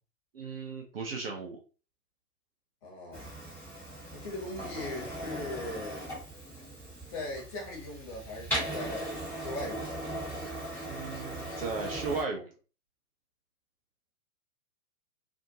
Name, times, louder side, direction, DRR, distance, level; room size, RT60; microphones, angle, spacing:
voice 1, 0.3-1.6 10.5-12.5, right 4 dB, 40° right, 0.5 m, -36 dB
voice 2, 2.8-3.3 4.1-6.0 7.1-10.1, left 2 dB, 25° left, 1.3 m, -39 dB
Printer, 3.1-12.2, right 1 dB, 5° left, 1.5 m, -38 dB
2.7 x 2.5 x 2.7 m
figure-of-eight pair, 115°, 47 cm